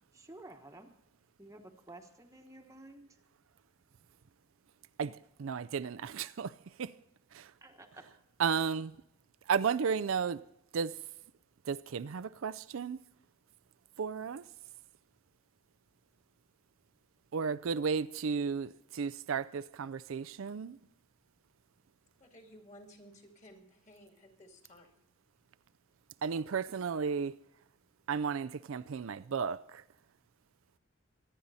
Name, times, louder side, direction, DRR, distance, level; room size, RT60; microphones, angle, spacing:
voice 1, 0.1-0.9 1.4-3.1 7.6-8.0, right 2 dB, 15° right, 1.1 m, -52 dB
voice 2, 5.0-6.9 7.3-7.5 8.4-9.0 9.5-10.4 10.7-11.0 11.6-13.0 14.0-14.4 17.3-20.8 26.2-27.3 28.1-29.8, right 6 dB, 70° right, 0.4 m, -34 dB
voice 3, 22.2-24.9, equal, 35° left, 2.6 m, -56 dB
25.0 x 10.0 x 4.1 m
head